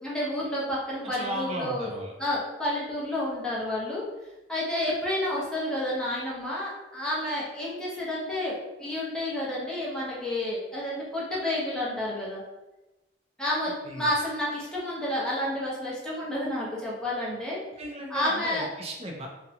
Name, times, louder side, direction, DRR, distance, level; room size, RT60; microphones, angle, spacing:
voice 1, 0.0-1.9 2.2-4.0 4.5-12.4 13.4-17.6 18.1-18.7, left 1 dB, 5° left, -7 dB, 0.8 m, -30 dB
voice 2, 1.0-2.1 13.8-14.1 17.8-19.3, equal, 35° right, 0 dB, 0.5 m, -35 dB
2.8 x 2.2 x 2.5 m, 1.0 s
head